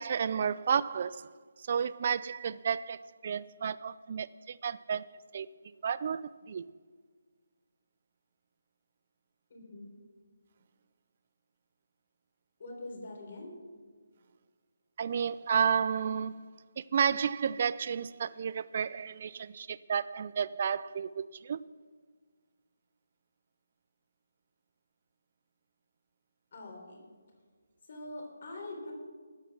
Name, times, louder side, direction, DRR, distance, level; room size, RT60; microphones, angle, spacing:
voice 1, 0.0-5.1 5.3-5.5 5.8-6.6 15.0-16.5 16.8-21.6, right 7 dB, 45° right, 18 dB, 0.3 m, -32 dB
voice 2, 9.5-9.9 12.6-13.5 26.5-27.1 27.9-28.9, left 2 dB, 50° left, 0 dB, 3.7 m, -43 dB
13.5 x 9.3 x 6.0 m, 1.6 s
figure-of-eight pair, 155°, 0 cm